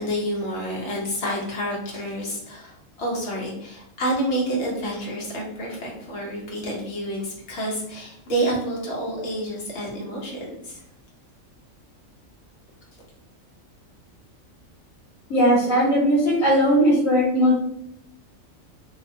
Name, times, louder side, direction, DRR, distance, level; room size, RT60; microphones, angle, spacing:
voice 1, 0.0-10.8, right 1 dB, 60° left, -3 dB, 1.0 m, -29 dB
voice 2, 15.3-17.6, equal, 85° left, -6 dB, 1.1 m, -18 dB
2.7 x 2.1 x 2.6 m, 0.78 s
omnidirectional pair, 1.4 m